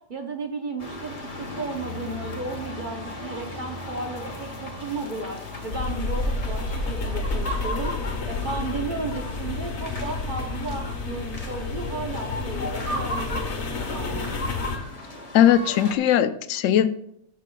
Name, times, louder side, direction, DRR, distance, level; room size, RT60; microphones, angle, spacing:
voice 1, 0.0-7.9 8.3-14.4, right 3 dB, 40° right, 3 dB, 0.8 m, -34 dB
sound 1, 0.8-16.0, left 1 dB, 30° left, 1.0 m, -36 dB
sound 2, 5.7-14.8, left 3 dB, 50° left, 1.3 m, -30 dB
voice 2, 15.3-16.9, left 10 dB, 65° left, 12 dB, 0.8 m, -19 dB
12.0 x 6.6 x 2.3 m, 0.72 s
omnidirectional pair, 1.6 m